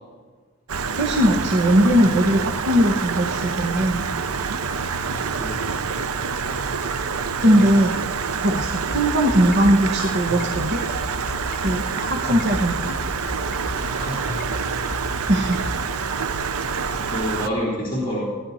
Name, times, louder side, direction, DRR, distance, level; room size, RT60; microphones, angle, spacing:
Stream, 0.7-17.5, right 5 dB, 90° right, 0.7 m, -27 dB
voice 1, 1.0-4.0 7.4-7.9 8.4-10.8 11.6-12.9 15.3-15.6, equal, 50° right, 2 dB, 1.2 m, -19 dB
voice 2, 4.6-5.0 5.4-6.3 13.7-14.4 15.6-15.7 17.1-18.2, equal, 25° left, -9 dB, 4.0 m, -29 dB
sound 1, 8.6-15.8, left 1 dB, 50° left, 2.0 m, -32 dB
18.0 x 11.0 x 4.3 m, 1.4 s
head